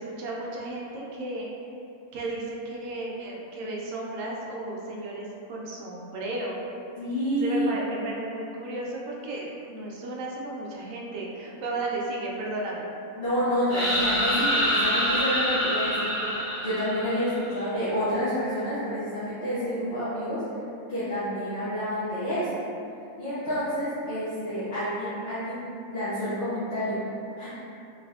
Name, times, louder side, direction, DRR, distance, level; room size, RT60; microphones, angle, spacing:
voice 1, 0.0-1.5 2.1-6.6 7.3-12.9, right 2 dB, 70° right, -3 dB, 0.9 m, -34 dB
voice 2, 7.0-7.8 13.2-16.3 16.6-20.4 20.9-22.6 23.2-27.0 27.4-27.5, equal, 55° left, -13 dB, 0.8 m, -29 dB
sound 1, 13.7-17.5, equal, 10° left, 1.3 m, -26 dB
3.3 x 2.6 x 2.3 m, 2.7 s
omnidirectional pair, 1.5 m